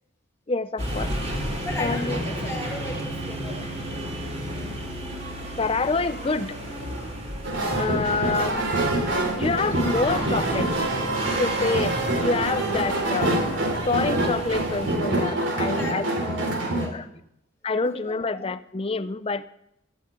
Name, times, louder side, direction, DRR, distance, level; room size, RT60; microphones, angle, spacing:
voice 1, 0.5-1.1 1.8-2.2 5.4-6.6 7.8-8.6 9.4-10.7 11.4-13.4 13.8-16.0 16.8-17.1 17.6-19.4, left 3 dB, 30° left, 14 dB, 0.5 m, -27 dB
sound 1, 0.8-14.9, equal, 35° right, 3.0 m, -33 dB
voice 2, 1.6-3.6 15.7-16.0 16.2-17.0 17.9-18.1, left 1 dB, 15° left, 1 dB, 1.9 m, -37 dB
sound 2, 7.4-16.9, right 1 dB, 75° right, 2.8 m, -26 dB
13.0 x 7.3 x 8.7 m, 0.81 s
head